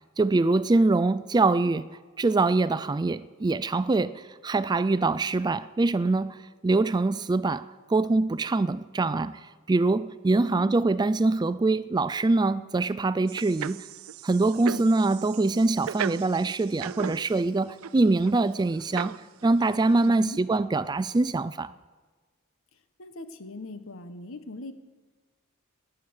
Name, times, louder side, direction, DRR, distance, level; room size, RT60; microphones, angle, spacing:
voice 1, 0.2-1.9 2.2-6.4 6.6-7.6 7.9-9.4 9.7-13.8 14.2-19.2 19.4-21.7, right 3 dB, 20° right, 0.4 m, -24 dB
voice 2, 10.3-10.7 14.7-14.9 20.0-20.4 23.0-24.7, left 2 dB, 75° left, 1.3 m, -40 dB
sound 1, 13.3-17.4 17.7-18.3 18.8-19.5 19.9-20.1, right 8 dB, 90° right, 0.4 m, -37 dB
19.0 x 10.0 x 6.4 m
head